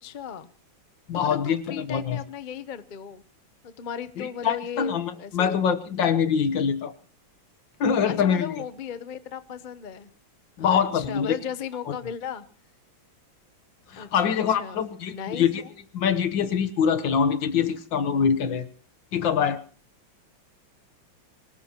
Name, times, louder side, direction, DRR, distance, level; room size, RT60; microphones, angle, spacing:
voice 1, 0.0-0.5 1.1-3.2 3.6-5.6 8.0-10.1 10.6-12.5 14.0-14.8 15.1-15.7, left 7 dB, 45° left, 12 dB, 0.6 m, -36 dB
voice 2, 1.1-2.2 4.2-6.9 7.8-8.5 10.6-11.4 13.9-15.6 15.9-18.7 19.1-19.6, left 7 dB, 70° left, 11 dB, 1.8 m, -24 dB
24.0 x 19.0 x 3.0 m, 0.36 s
omnidirectional pair, 2.2 m